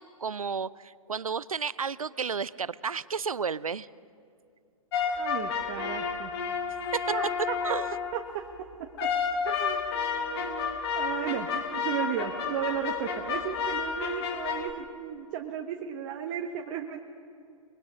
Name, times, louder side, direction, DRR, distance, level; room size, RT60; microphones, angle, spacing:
voice 1, 0.0-3.9 6.9-7.1 7.6-7.9, right 5 dB, 85° right, 20 dB, 0.5 m, -32 dB
sound 1, 4.9-8.2 9.0-14.7, left 6 dB, 45° left, 2.1 m, -31 dB
voice 2, 5.2-6.3 7.1-7.5 8.1-8.4 9.4-17.0, right 9 dB, 40° right, 3 dB, 1.3 m, -35 dB
24.0 x 22.0 x 6.2 m, 2.4 s
figure-of-eight pair, 115°, 17 cm